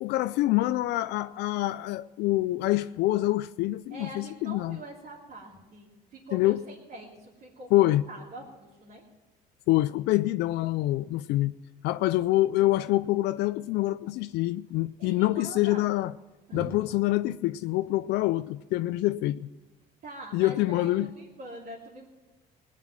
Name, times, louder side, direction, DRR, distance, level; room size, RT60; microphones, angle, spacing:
voice 1, 0.0-4.8 6.3-6.6 7.7-8.0 9.7-11.6 11.8-16.1 16.5-19.5 20.3-21.1, left 16 dB, 85° left, 0.4 m, -26 dB
voice 2, 3.9-9.0 15.0-15.9 16.5-16.7 20.0-22.1, right 2 dB, 60° right, 3.0 m, -44 dB
19.0 x 9.2 x 6.0 m
cardioid pair, 110°, 17 cm